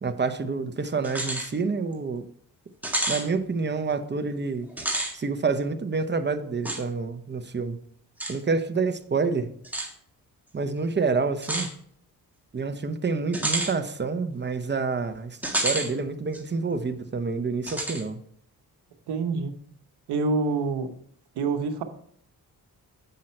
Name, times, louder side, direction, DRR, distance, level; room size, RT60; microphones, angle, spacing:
voice 1, 0.0-2.3 3.1-4.7 5.1-7.8 8.3-9.5 10.5-11.7 12.5-18.2, right 4 dB, 25° right, 0.8 m, -28 dB
sound 1, 1.0-1.5 1.9-2.0 2.8-3.3 4.7-5.1 6.6-6.8 8.2-8.4 9.6-9.9 11.4-11.7 13.3-13.7 15.4-15.9 16.3-16.4 17.7-18.0, right 1 dB, 5° right, 1.6 m, -28 dB
voice 2, 19.1-19.5 20.1-20.9 21.4-21.8, right 4 dB, 85° right, 1.0 m, -26 dB
7.8 x 5.5 x 4.4 m
cardioid pair, 80°, 39 cm